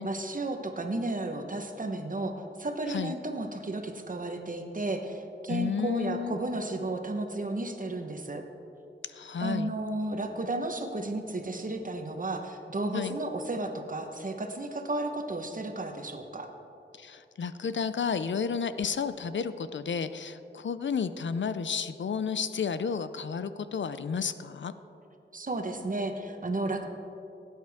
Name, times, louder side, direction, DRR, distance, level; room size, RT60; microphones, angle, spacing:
voice 1, 0.0-8.4 9.4-16.5 25.3-26.9, right 2 dB, 45° right, 5 dB, 1.0 m, -33 dB
voice 2, 5.5-6.4 9.1-9.7 12.9-13.2 17.0-24.7, left 6 dB, 75° left, 12 dB, 0.5 m, -32 dB
17.0 x 9.2 x 3.5 m, 2.8 s
wide cardioid pair, 90°, 19 cm